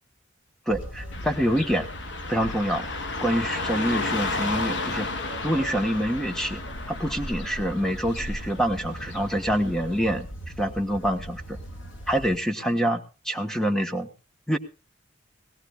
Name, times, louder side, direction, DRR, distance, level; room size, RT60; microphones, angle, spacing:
sound 1, 0.7-12.4, equal, 80° left, 2.7 m, -39 dB
voice 1, 0.7-1.9 2.3-2.9 3.2-5.1 5.4-6.6 6.9-10.3 10.6-11.6 12.1-14.1 14.5-14.6, equal, 5° left, 6 dB, 1.3 m, -26 dB
Car passing by / Traffic noise roadway noise, 1.1-10.1, left 3 dB, 60° left, 1.2 m, -34 dB
20.5 x 16.5 x 2.5 m, 0.33 s
head